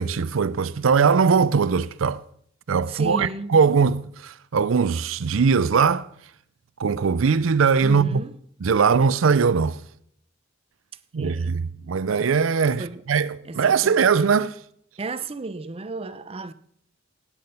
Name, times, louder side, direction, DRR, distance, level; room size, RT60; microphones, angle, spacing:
voice 1, 0.0-2.2 2.7-6.1 6.8-8.2 8.6-9.8 11.1-14.5, right 5 dB, 80° right, 0.5 m, -20 dB
voice 2, 2.9-3.5 7.8-8.3 11.1-11.6 12.8-13.0 13.4-14.1 15.0-16.5, right 3 dB, 30° right, 0.6 m, -33 dB
17.0 x 8.6 x 5.6 m
head